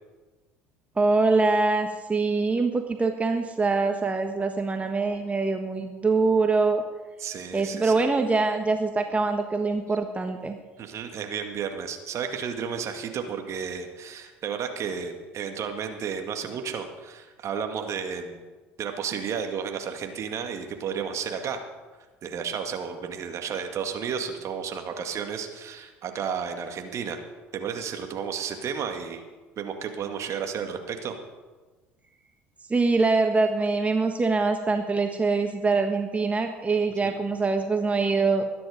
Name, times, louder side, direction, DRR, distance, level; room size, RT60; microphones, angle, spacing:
voice 1, 1.0-6.8 7.5-10.6 32.7-38.5, right 3 dB, 20° right, 5 dB, 1.4 m, -24 dB
voice 2, 7.2-8.0 10.8-18.4 18.8-21.6 22.2-27.2 27.5-29.2 29.6-31.1 37.0-37.1, right 7 dB, 45° right, 5 dB, 2.1 m, -32 dB
21.0 x 10.0 x 5.1 m, 1.3 s
figure-of-eight pair, 65°, 7 cm